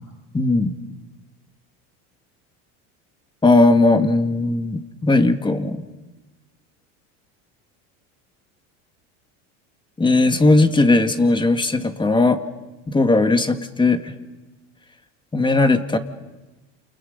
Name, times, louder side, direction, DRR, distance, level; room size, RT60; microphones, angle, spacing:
voice 1, 0.3-0.7 3.4-5.8 10.0-12.4 12.9-14.1 15.3-16.0, left 2 dB, 15° left, 8 dB, 1.9 m, -17 dB
29.0 x 28.5 x 5.5 m, 1.1 s
supercardioid pair, 100°, 37 cm